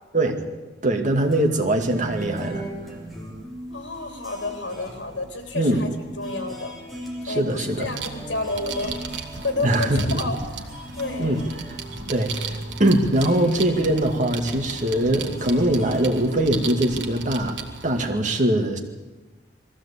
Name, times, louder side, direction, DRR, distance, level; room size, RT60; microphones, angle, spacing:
voice 1, 0.1-0.5 0.8-2.7 5.5-5.8 7.2-7.9 9.6-10.3 11.2-11.4 11.7-11.8 12.1-18.8, right 1 dB, 45° right, 3 dB, 2.1 m, -22 dB
sound 1, 1.2-16.1, equal, ahead, 3.5 m, -38 dB
voice 2, 3.7-5.9 6.2-6.7 7.3-11.3, left 2 dB, 90° left, 5 dB, 3.4 m, -30 dB
sound 2, 7.7-18.1, right 5 dB, 85° right, 1.9 m, -36 dB
20.5 x 15.0 x 8.4 m, 1.2 s
head